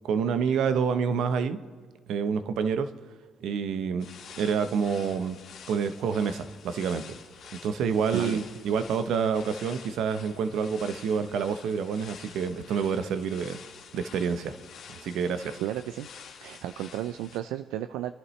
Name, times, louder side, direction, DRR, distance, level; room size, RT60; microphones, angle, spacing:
voice 1, 0.0-1.6 2.1-2.9 3.4-4.1 4.4-5.4 5.7-7.2 7.6-13.6 13.9-14.5 14.9-15.6, right 6 dB, 70° right, 10 dB, 0.8 m, -28 dB
sound 1, 4.0-17.4, left 6 dB, 70° left, 2.0 m, -48 dB
voice 2, 15.6-16.1 16.4-18.1, right 12 dB, 85° right, 10 dB, 0.4 m, -33 dB
26.0 x 11.0 x 3.2 m, 1.5 s
cardioid pair, 95°, 0 cm